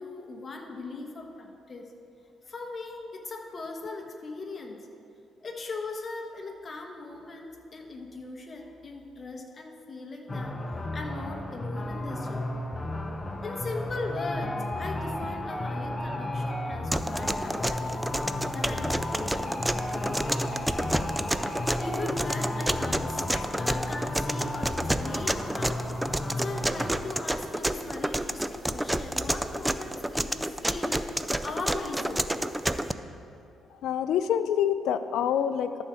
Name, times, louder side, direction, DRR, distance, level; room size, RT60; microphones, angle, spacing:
voice 1, 0.0-1.9 2.5-4.8 5.4-10.6 10.9-12.6 13.4-18.1 18.5-21.2 21.8-23.2 23.6-32.4 32.9-33.0, left 3 dB, 40° left, 3 dB, 1.2 m, -39 dB
sound 1, 10.3-27.0, left 1 dB, 20° left, 0.8 m, -33 dB
sound 2, 16.9-32.9, right 1 dB, 5° right, 0.4 m, -29 dB
voice 2, 33.8-35.8, left 9 dB, 80° left, 11 dB, 0.4 m, -26 dB
13.0 x 4.5 x 6.1 m, 2.6 s
cardioid pair, 90°, 0 cm